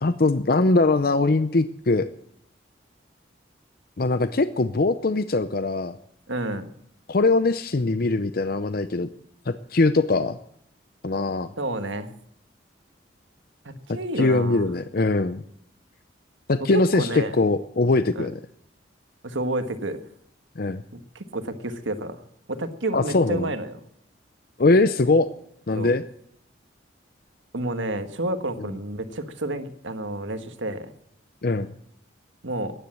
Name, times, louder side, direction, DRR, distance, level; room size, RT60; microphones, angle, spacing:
voice 1, 0.0-2.1 4.0-6.0 7.1-9.1 9.5-10.4 11.0-11.5 14.2-15.4 16.5-18.4 20.6-20.8 22.9-23.5 24.6-25.3 25.7-26.0 31.4-31.7, left 3 dB, 50° left, 12 dB, 0.6 m, -21 dB
voice 2, 6.3-6.6 11.6-12.1 13.6-14.6 16.7-17.4 18.1-18.3 19.2-20.0 20.9-22.2 22.5-23.8 25.7-25.9 27.5-30.9 32.4-32.7, right 1 dB, 80° right, 9 dB, 1.5 m, -30 dB
15.0 x 10.0 x 7.6 m, 0.73 s
head